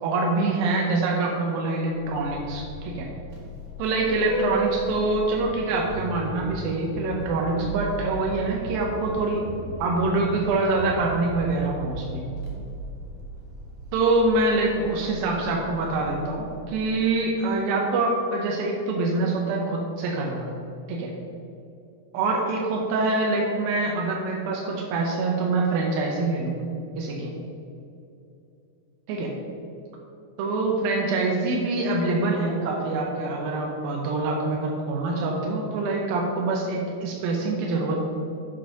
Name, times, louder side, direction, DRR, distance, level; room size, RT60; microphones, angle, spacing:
voice 1, 0.0-3.1 3.8-9.5 9.8-12.2 13.9-20.5 20.9-21.1 22.1-26.6 27.0-27.3 29.1-29.3 30.4-38.1, right 2 dB, 80° right, -1 dB, 2.6 m, -25 dB
Vehicle horn car horn honking, 1.9-17.3, right 1 dB, 55° right, 1.9 m, -36 dB
7.9 x 5.2 x 5.6 m, 2.6 s
omnidirectional pair, 4.2 m